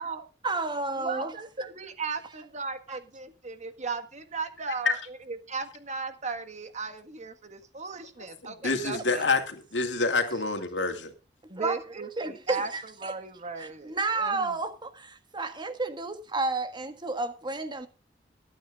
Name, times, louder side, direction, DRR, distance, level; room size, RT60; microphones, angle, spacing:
voice 1, 0.4-1.3 2.9-3.0 8.6-8.7 11.6-11.8 12.2-13.1 13.6-17.9, right 3 dB, 25° right, 1.6 m, -31 dB
voice 2, 0.9-9.3 11.5-14.5, right 4 dB, 40° right, 1.6 m, -36 dB
voice 3, 8.4-11.1, left 3 dB, 80° left, 2.5 m, -27 dB
23.5 x 9.1 x 2.4 m
head